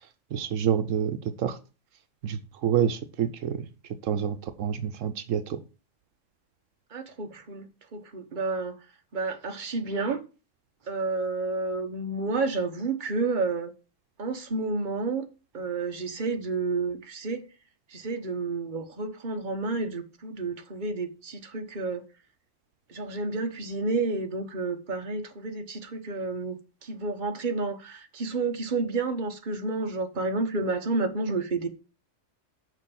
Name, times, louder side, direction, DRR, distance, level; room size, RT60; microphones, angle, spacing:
voice 1, 0.3-1.6 2.2-3.7 4.0-5.6, right 9 dB, 80° right, 1.1 m, -28 dB
voice 2, 6.9-8.8 9.1-10.2 10.9-13.7 14.2-15.3 15.5-17.4 17.9-22.0 22.9-31.7, right 3 dB, 40° right, 1.2 m, -30 dB
6.5 x 5.3 x 7.0 m
omnidirectional pair, 1.3 m